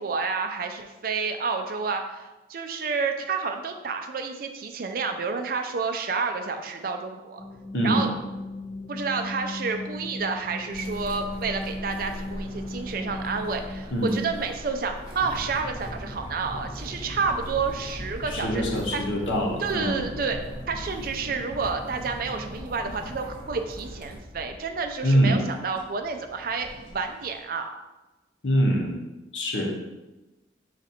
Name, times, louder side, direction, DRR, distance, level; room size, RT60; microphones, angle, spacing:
voice 1, 0.0-7.4 7.8-8.2 8.9-18.6 18.9-19.0 19.6-20.4 20.7-27.7, right 4 dB, 50° right, 5 dB, 0.4 m, -30 dB
sound 1, 7.4-13.8, left 2 dB, 20° left, 0.7 m, -36 dB
voice 2, 7.7-8.1 13.9-14.2 18.2-20.0 25.0-25.4 28.4-29.0 29.3-29.7, equal, 75° left, -1 dB, 1.0 m, -24 dB
sound 2, 10.7-24.2, equal, 25° right, 0.9 m, -42 dB
sound 3, 15.2-27.4, equal, 10° right, 1.2 m, -41 dB
5.0 x 2.5 x 4.2 m, 1.1 s
head